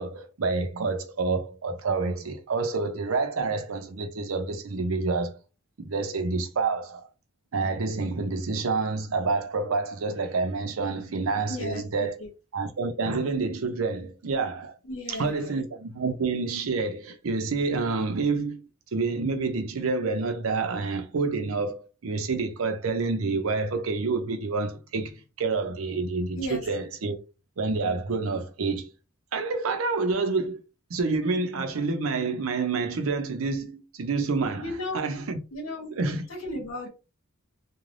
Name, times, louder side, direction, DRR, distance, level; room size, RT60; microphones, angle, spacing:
voice 1, 0.0-5.4 5.8-7.1 7.5-12.2 12.5-14.8 15.1-18.6 18.9-27.2 27.6-28.9 29.3-30.6 30.9-35.4 35.9-36.3, right 4 dB, 85° right, 0.6 m, -28 dB
voice 2, 11.5-12.3 14.8-15.6 26.4-26.6 34.6-35.0 35.5-35.9 36.3-36.9, left 1 dB, 70° left, 1.0 m, -35 dB
3.2 x 2.2 x 2.5 m
head